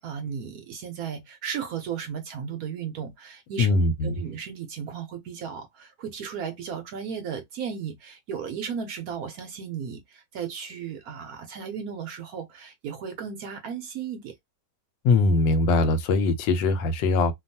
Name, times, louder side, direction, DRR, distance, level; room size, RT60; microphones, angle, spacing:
voice 1, 0.0-14.3, right 7 dB, 70° right, 0.9 m, -35 dB
voice 2, 3.6-4.1 15.0-17.3, left 3 dB, 85° left, 1.3 m, -21 dB
2.9 x 2.3 x 2.6 m
omnidirectional pair, 1.9 m